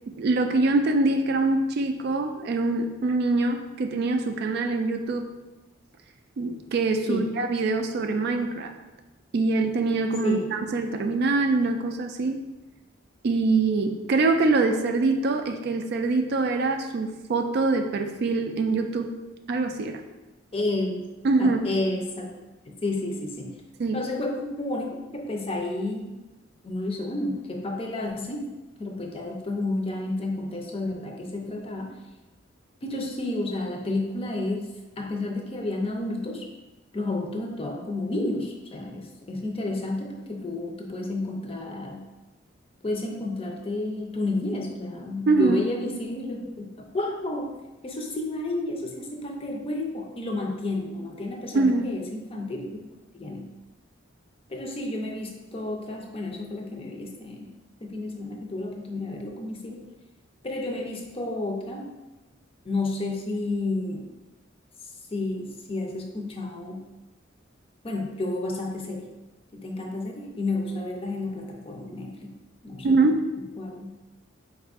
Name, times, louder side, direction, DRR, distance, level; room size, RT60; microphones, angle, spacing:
voice 1, 0.1-5.3 6.4-8.7 9.3-12.4 13.2-19.1 19.5-20.0 21.2-21.6 23.8-24.0 45.3-45.6 51.5-51.9 72.8-73.3, right 3 dB, 55° right, 6 dB, 0.3 m, -24 dB
voice 2, 20.5-21.1 21.4-22.3 22.7-23.6 23.9-26.2 26.6-28.5 28.8-32.0 32.8-36.5 36.9-42.1 42.8-46.7 46.9-47.6 47.8-52.8 53.1-53.5 54.5-57.5 57.8-59.8 60.4-62.0 62.6-64.1 65.1-66.9 67.8-69.1 69.5-72.4 72.6-73.0 73.6-74.0, left 2 dB, 30° left, 1 dB, 0.5 m, -31 dB
4.3 x 2.4 x 3.5 m, 1.1 s
head